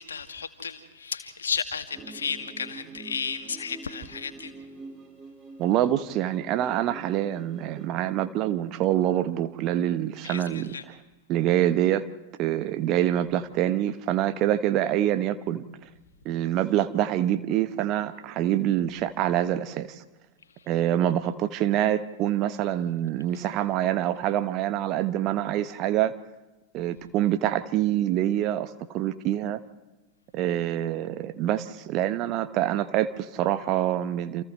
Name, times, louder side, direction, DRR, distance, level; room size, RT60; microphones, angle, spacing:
voice 1, 0.0-4.5 10.2-10.8, left 6 dB, 70° left, 6 dB, 2.0 m, -33 dB
sound 1, 1.9-7.9, right 3 dB, 25° right, 1.9 m, -45 dB
voice 2, 5.6-10.9 11.3-12.0 12.4-15.6 16.2-20.0 20.7-26.1 26.7-29.6 30.3-34.4, right 12 dB, 40° right, 11 dB, 1.1 m, -26 dB
29.0 x 28.0 x 3.2 m, 1.1 s
figure-of-eight pair, 90°, 0 cm